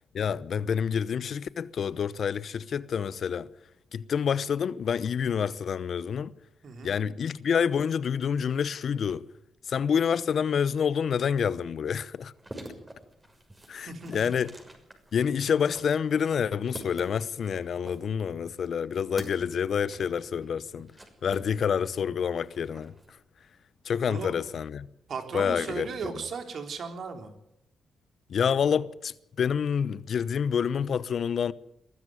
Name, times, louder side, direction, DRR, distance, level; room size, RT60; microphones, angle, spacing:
voice 1, 0.1-3.5 3.9-6.3 6.8-9.3 9.6-12.3 13.7-14.6 15.1-20.9 21.2-22.9 23.8-24.9 25.3-26.2 28.3-31.5, left 7 dB, 65° left, 0.9 m, -28 dB
sound 1, 12.2-22.0 22.3-23.1, right 1 dB, 20° right, 6.2 m, -47 dB
voice 2, 13.9-14.2 24.1-24.3 25.1-27.3, right 5 dB, 65° right, 3.7 m, -36 dB
22.5 x 13.5 x 9.4 m
supercardioid pair, 50°, 0 cm